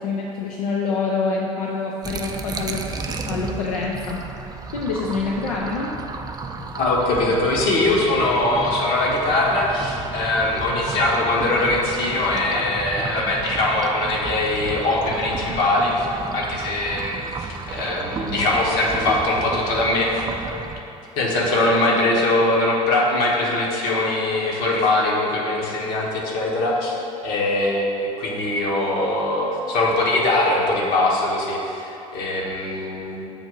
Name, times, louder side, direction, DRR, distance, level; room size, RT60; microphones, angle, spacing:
voice 1, 0.0-4.2 4.7-5.9, left 4 dB, 85° left, -2 dB, 0.5 m, -26 dB
sound 1, 2.0-20.8, right 4 dB, 20° right, 0.4 m, -32 dB
voice 2, 6.8-16.1 16.3-20.2 21.2-26.9 27.2-33.3, left 2 dB, 60° left, -3 dB, 1.2 m, -22 dB
7.1 x 2.6 x 5.2 m, 2.9 s
hypercardioid pair, 65°, 18 cm